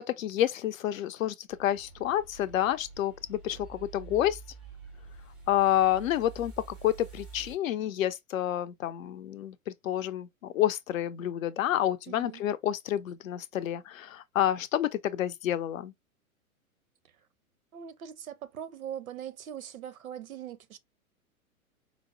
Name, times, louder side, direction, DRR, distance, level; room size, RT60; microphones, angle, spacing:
voice 1, 0.0-4.4 5.5-15.9, left 12 dB, 65° left, 0.5 m, -29 dB
sound 1, 1.5-7.5, right 5 dB, ahead, 0.3 m, -48 dB
voice 2, 12.1-12.4 17.7-20.8, right 9 dB, 75° right, 0.6 m, -41 dB
4.6 x 2.0 x 2.5 m
figure-of-eight pair, 105°, 43 cm